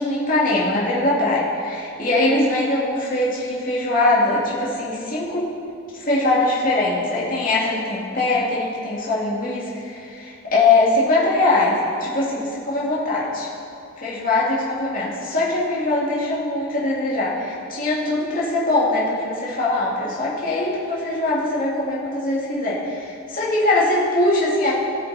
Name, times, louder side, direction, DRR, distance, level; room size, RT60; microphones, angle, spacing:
voice 1, 0.0-5.5 5.9-13.5 14.0-24.8, left 2 dB, 40° left, -7 dB, 2.6 m, -21 dB
18.5 x 7.5 x 4.4 m, 2.6 s
head